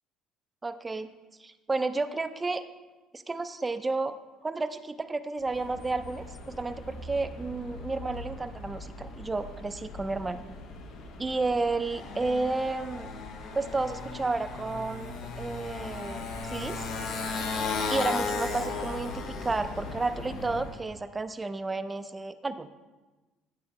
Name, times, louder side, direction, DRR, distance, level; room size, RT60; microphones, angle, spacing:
voice 1, 0.6-1.1 1.4-2.6 3.1-4.1 4.4-10.4 11.2-13.1 13.5-16.9 17.9-22.7, right 3 dB, 20° right, 10 dB, 0.5 m, -32 dB
Motorcycle, 5.4-20.8, left 4 dB, 65° left, 0.9 m, -37 dB
9.5 x 3.8 x 4.6 m, 1.2 s
supercardioid pair, 90°, 0 cm